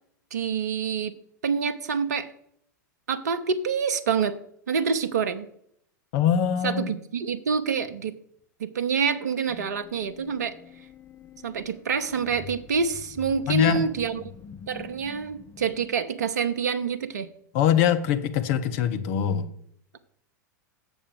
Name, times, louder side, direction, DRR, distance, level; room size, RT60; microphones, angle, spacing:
voice 1, 0.3-1.1 1.4-2.3 3.1-4.4 4.7-5.5 6.6-8.2 8.6-10.5 11.4-14.2 14.7-17.3, right 6 dB, 60° right, 11 dB, 0.7 m, -27 dB
voice 2, 6.1-6.9 13.5-13.9 17.5-19.5, left 9 dB, 45° left, 9 dB, 0.9 m, -23 dB
sound 1, 9.5-15.9, left 7 dB, 25° left, 0.8 m, -45 dB
7.2 x 7.0 x 6.3 m, 0.69 s
figure-of-eight pair, 90°, 10 cm